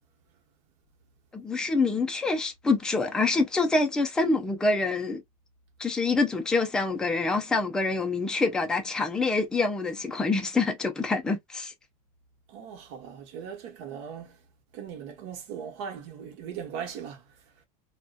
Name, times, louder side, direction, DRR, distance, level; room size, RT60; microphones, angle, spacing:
voice 1, 1.3-5.2 5.8-11.7, left 3 dB, 5° left, 0.3 m, -26 dB
voice 2, 12.5-14.4 14.7-17.2, right 7 dB, 60° right, 1.0 m, -39 dB
2.6 x 2.1 x 2.3 m
cardioid pair, 165°, 19 cm